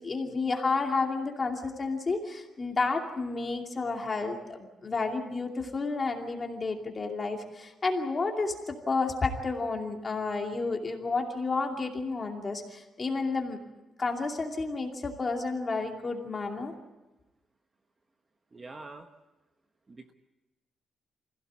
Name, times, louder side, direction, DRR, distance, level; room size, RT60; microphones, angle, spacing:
voice 1, 0.0-13.6 14.0-16.7, left 3 dB, 25° left, 2 dB, 2.5 m, -31 dB
voice 2, 18.5-19.1 19.9-20.1, right 3 dB, 20° right, 5 dB, 1.0 m, -45 dB
25.5 x 16.5 x 8.6 m, 1.1 s
cardioid pair, 175°, 0 cm